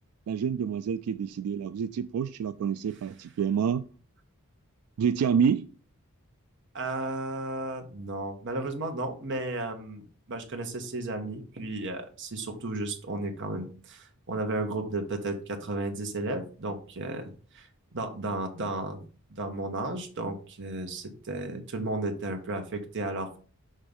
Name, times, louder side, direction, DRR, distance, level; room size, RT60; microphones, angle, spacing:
voice 1, 0.3-3.9 5.0-5.7, right 7 dB, 90° right, 10 dB, 0.3 m, -27 dB
voice 2, 6.7-19.0 19.4-23.4, right 2 dB, 55° right, 5 dB, 1.2 m, -34 dB
6.5 x 3.0 x 5.3 m, 0.39 s
head